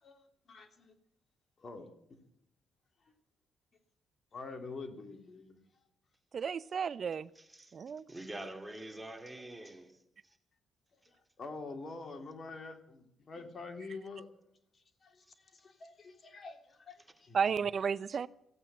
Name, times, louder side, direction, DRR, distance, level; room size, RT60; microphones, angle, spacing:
voice 1, 0.0-0.9 1.6-1.9 3.0-3.1 4.3-5.6 11.1-14.3 14.7-17.4, left 3 dB, 45° left, 3.0 m, -46 dB
voice 2, 6.3-7.3 7.7-8.0 17.3-18.3, right 6 dB, 50° right, 0.5 m, -32 dB
voice 3, 7.4-7.7 8.1-10.4, right 1 dB, 10° right, 2.4 m, -46 dB
15.5 x 9.1 x 9.0 m
cardioid pair, 85°, 0 cm